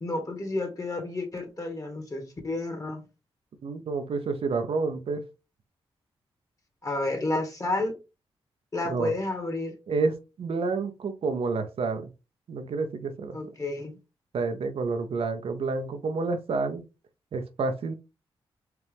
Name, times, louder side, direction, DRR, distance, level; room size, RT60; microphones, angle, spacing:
voice 1, 0.0-3.0 6.8-8.0 8.7-9.7 13.3-13.9, left 2 dB, 35° left, 1.7 m, -31 dB
voice 2, 3.6-5.2 8.9-9.1 9.9-10.1 10.4-12.1 12.5-13.4 14.3-16.8 17.3-17.9, right 4 dB, 70° right, 0.7 m, -29 dB
4.5 x 2.5 x 3.5 m
cardioid pair, 60°, 10 cm